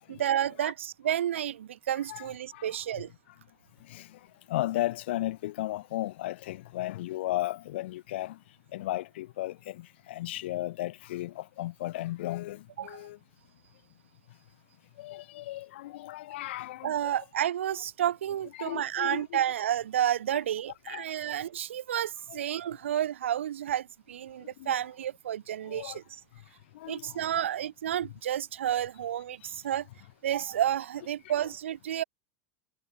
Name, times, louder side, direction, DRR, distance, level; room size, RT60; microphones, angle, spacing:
voice 1, 0.1-3.1 12.8-13.0 16.8-26.0 26.9-29.9 30.2-32.0, right 10 dB, 65° right, 0.4 m, -31 dB
voice 2, 2.1-2.8 3.3-3.4 3.8-13.2 14.3-14.4 15.0-17.2 18.5-19.4 20.9-21.3 22.3-22.4 24.4-24.8 25.6-26.0 26.3-27.5 29.4-29.6 31.2-31.5, left 16 dB, 55° left, 0.6 m, -36 dB
figure-of-eight pair, 85°, 7 cm